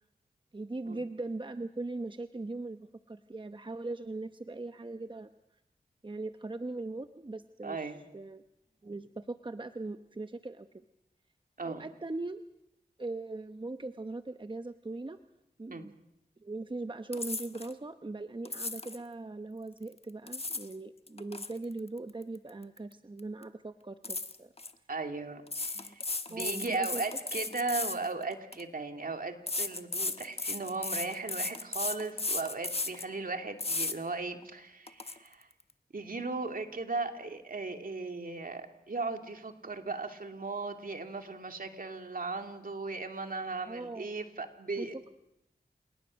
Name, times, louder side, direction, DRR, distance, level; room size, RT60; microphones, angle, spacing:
voice 1, 0.5-5.3 6.0-7.8 8.1-8.4 8.8-10.8 11.6-12.4 13.0-15.2 15.6-15.9 16.4-24.5 25.7-26.0 26.3-27.2 43.7-44.1 44.8-45.1, right 2 dB, 30° right, 9 dB, 0.9 m, -40 dB
voice 2, 7.6-8.0 11.6-11.8 15.7-15.9 24.9-26.0 26.3-35.5 35.9-45.0, right 3 dB, 60° right, 5 dB, 2.5 m, -37 dB
sound 1, 17.1-17.7 18.5-19.0 20.0-20.7 21.1-22.9 23.2-23.4 24.0-24.7 25.5-28.6 29.5-33.1 33.6-34.0 34.4-34.5 34.9-35.1, left 3 dB, 40° left, 1.3 m, -35 dB
28.5 x 19.0 x 6.3 m, 0.83 s
cardioid pair, 40°, 16 cm